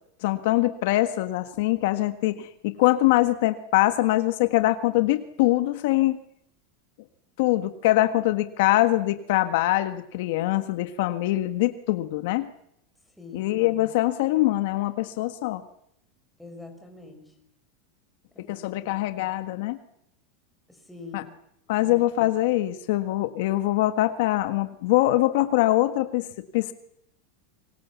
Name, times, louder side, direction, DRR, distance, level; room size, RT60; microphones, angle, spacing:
voice 1, 0.2-6.2 7.4-12.5 13.3-15.6 18.5-19.8 21.1-21.2 21.7-26.3 26.5-26.7, left 16 dB, 65° left, 10 dB, 1.6 m, -23 dB
voice 2, 13.2-13.6 16.4-17.3 18.3-19.0 20.7-21.3 21.8-22.0, left 3 dB, ahead, 3 dB, 5.9 m, -45 dB
26.0 x 24.0 x 7.3 m, 0.77 s
supercardioid pair, 145°, 0 cm